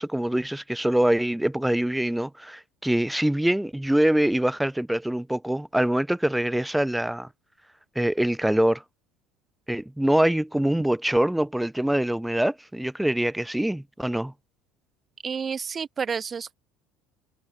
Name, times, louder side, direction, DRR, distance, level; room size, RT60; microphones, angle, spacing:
voice 1, 0.0-7.3 8.0-8.8 9.7-14.3, right 1 dB, 5° right, 0.8 m, -24 dB
voice 2, 15.2-16.5, right 6 dB, 30° right, 6.1 m, -30 dB
supercardioid pair, 120°, 0 cm